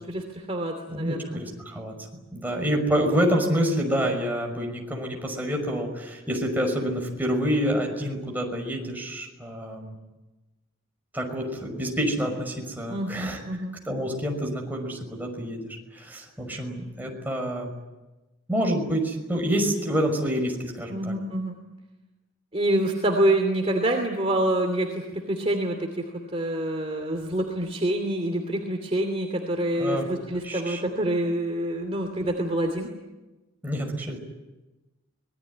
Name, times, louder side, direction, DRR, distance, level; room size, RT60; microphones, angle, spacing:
voice 1, 0.0-1.4 12.9-13.8 20.9-21.6 22.5-25.9 26.3-32.9, right 1 dB, 30° right, 2 dB, 2.9 m, -26 dB
voice 2, 0.9-1.9 2.3-10.0 11.1-13.4 13.9-17.7 18.5-21.1 29.8-30.1 30.4-30.8 33.6-34.2, equal, 10° right, 1 dB, 5.9 m, -27 dB
26.0 x 21.0 x 9.8 m, 1.1 s
head